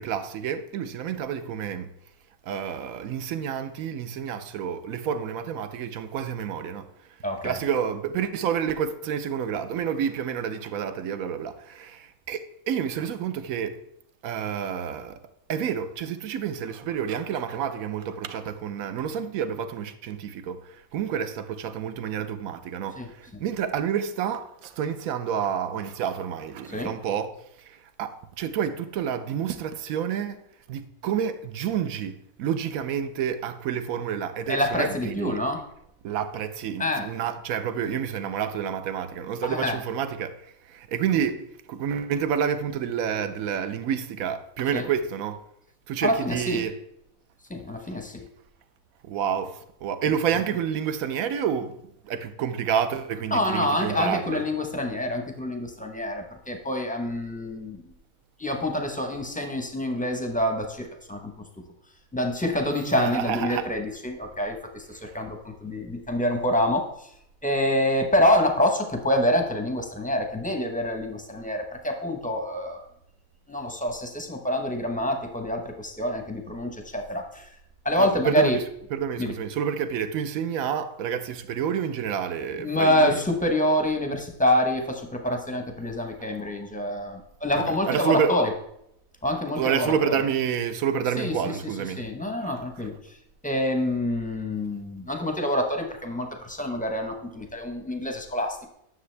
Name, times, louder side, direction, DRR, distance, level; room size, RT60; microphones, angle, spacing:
voice 1, 0.0-1.9 2.4-6.9 7.4-13.8 14.2-15.2 15.5-27.3 27.6-30.4 30.7-35.4 36.0-45.4 45.9-46.8 49.0-51.8 52.0-54.4 62.9-63.7 78.0-78.6 78.9-83.2 87.6-88.4 89.6-92.0 92.4-92.5, right 8 dB, 75° right, 1.0 m, -29 dB
voice 2, 7.2-7.6 23.0-23.1 23.3-23.4 26.7-26.9 34.5-35.6 36.8-37.1 39.4-39.8 44.7-44.8 46.0-46.7 47.5-48.2 53.3-57.8 58.4-61.3 62.1-67.1 67.4-72.8 73.5-77.5 77.8-78.6 79.2-79.3 82.6-88.5 89.2-90.1 91.2-91.3 92.0-92.9 93.4-98.7, left 1 dB, 10° left, 0.6 m, -26 dB
9.6 x 6.5 x 3.3 m
omnidirectional pair, 1.6 m